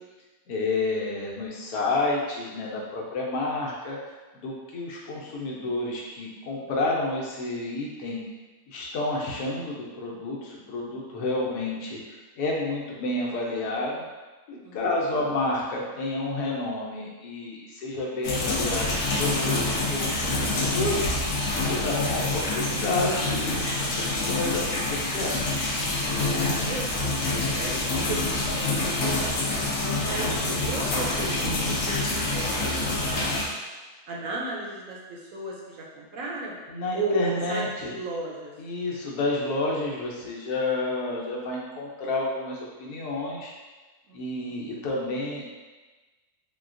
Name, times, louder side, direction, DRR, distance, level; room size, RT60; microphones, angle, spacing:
voice 1, 0.5-4.0 4.3-8.2 8.7-14.0 14.5-21.1 21.5-25.4 36.7-37.9 38.6-43.5 44.1-45.5, left 2 dB, 85° left, -2 dB, 1.2 m, -30 dB
sound 1, 18.2-33.4, left 2 dB, 65° left, 0.9 m, -27 dB
voice 2, 26.1-28.2 28.5-33.4 34.1-36.6 36.9-38.5 44.1-44.6, right 1 dB, 70° right, -2 dB, 0.9 m, -35 dB
3.9 x 2.2 x 2.5 m, 1.2 s
omnidirectional pair, 1.6 m